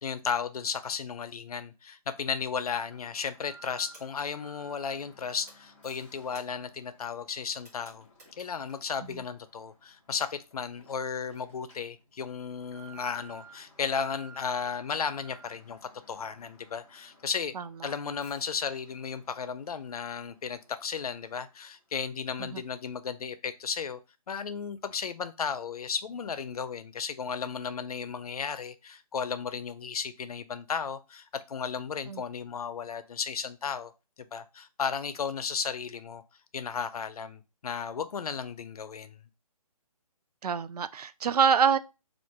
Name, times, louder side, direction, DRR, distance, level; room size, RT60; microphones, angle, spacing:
voice 1, 0.0-8.1 8.4-15.8 16.1-17.5 17.8-24.0 24.3-33.9 34.3-36.2 36.5-39.2, left 6 dB, 70° left, 0.6 m, -34 dB
Alarm, 2.9-21.6 21.9-22.0 22.6-22.7, right 3 dB, 5° left, 0.5 m, -56 dB
sound 1, 3.9-5.1 5.4-8.8, right 1 dB, 25° right, 1.5 m, -57 dB
voice 2, 17.5-17.9 22.4-22.6 32.1-32.2 40.4-41.8, right 7 dB, 85° right, 0.4 m, -26 dB
3.6 x 2.5 x 4.6 m
hypercardioid pair, 170°, 19 cm